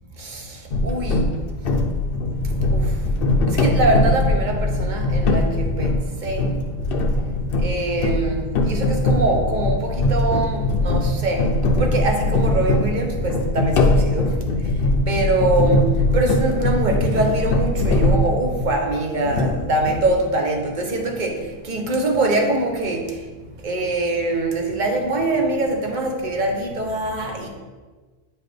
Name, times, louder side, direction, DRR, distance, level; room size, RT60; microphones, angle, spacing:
voice 1, 0.2-1.3 2.7-2.9 3.5-6.5 7.6-11.5 11.8-14.4 14.6-14.7 15.1-23.2 23.6-27.5, right 2 dB, 50° right, 2 dB, 1.0 m, -23 dB
sound 1, 0.7-18.9 19.2-20.1, left 1 dB, 65° left, 0.8 m, -21 dB
8.7 x 4.4 x 3.3 m, 1.3 s
omnidirectional pair, 1.0 m